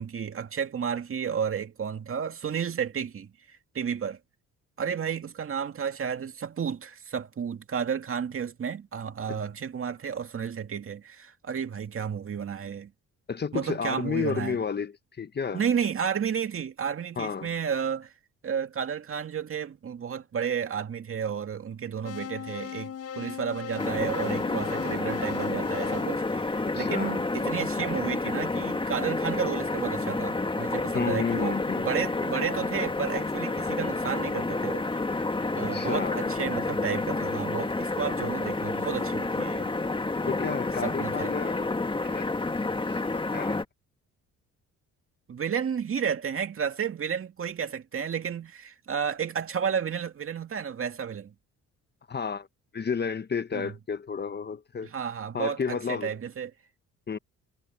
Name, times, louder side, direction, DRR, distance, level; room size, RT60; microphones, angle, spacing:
voice 1, 0.0-4.2 4.8-12.9 13.5-14.6 15.5-18.1 18.4-34.9 35.5-39.7 40.8-41.3 45.3-51.3 53.5-53.7 54.8-56.5, right 7 dB, 45° right, 2.2 m, -32 dB
voice 2, 13.3-15.6 17.2-17.5 26.6-27.3 30.9-31.9 35.6-36.3 40.3-41.7 42.0-42.4 42.9-43.6 52.1-52.5 52.7-54.9 55.3-56.2 57.1-57.2, left 6 dB, 35° left, 1.2 m, -31 dB
sound 1, 22.0-27.2, left 8 dB, 55° left, 6.7 m, -39 dB
sound 2, 23.8-43.6, left 3 dB, 15° left, 1.6 m, -29 dB
cardioid pair, 90°, 30 cm